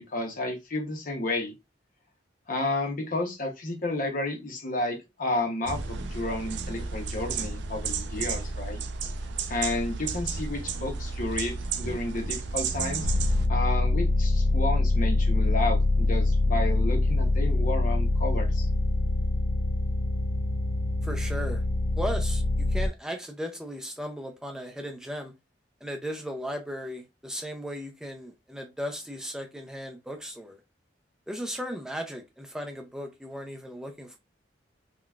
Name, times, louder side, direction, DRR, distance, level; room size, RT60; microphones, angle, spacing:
voice 1, 0.0-1.5 2.5-8.8 9.5-13.1 13.5-18.7, left 2 dB, 50° left, 0.7 m, -31 dB
sound 1, 5.6-13.5, right 4 dB, 70° right, 0.4 m, -33 dB
sound 2, 13.0-22.9, left 2 dB, 85° left, 0.5 m, -24 dB
voice 2, 21.0-21.6 22.0-25.3 25.8-30.6 31.3-34.2, equal, 5° right, 0.4 m, -36 dB
3.8 x 2.2 x 2.3 m
head